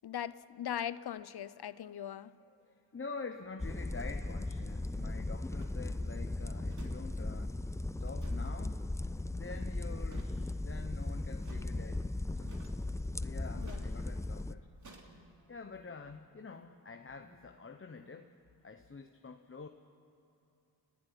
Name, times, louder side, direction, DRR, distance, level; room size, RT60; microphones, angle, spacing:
voice 1, 0.0-2.3 13.6-13.9, left 10 dB, 65° left, 16 dB, 0.8 m, -40 dB
voice 2, 2.6-7.5 8.0-8.9 9.3-12.1 12.4-12.6 13.2-14.7 15.5-18.3 18.6-19.7, left 4 dB, 30° left, 6 dB, 0.9 m, -47 dB
sound 1, 3.6-14.6, left 2 dB, 5° left, 0.5 m, -37 dB
sound 2, 5.6-5.8 6.7-7.0 7.2-7.3 8.1-8.5 10.1-10.4 11.4-11.6 12.5-12.9 13.6-13.9 14.8-15.1, right 3 dB, 45° right, 3.1 m, -55 dB
Alarm, 12.0-18.1, equal, 20° right, 3.7 m, -66 dB
29.0 x 12.0 x 9.9 m, 2.8 s
cardioid pair, 80°, 43 cm